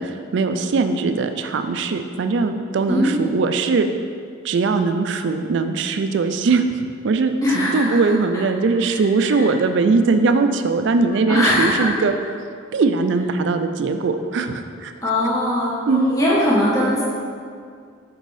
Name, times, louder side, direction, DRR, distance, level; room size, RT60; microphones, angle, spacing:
voice 1, 0.0-3.9 4.4-12.1 12.7-14.9 15.9-16.0, right 4 dB, 60° right, 7 dB, 0.3 m, -20 dB
voice 2, 7.4-8.0 8.8-8.9 9.3-9.5 11.3-11.9 15.0-17.0, left 1 dB, 15° left, -7 dB, 1.0 m, -20 dB
6.5 x 4.5 x 3.2 m, 2.2 s
head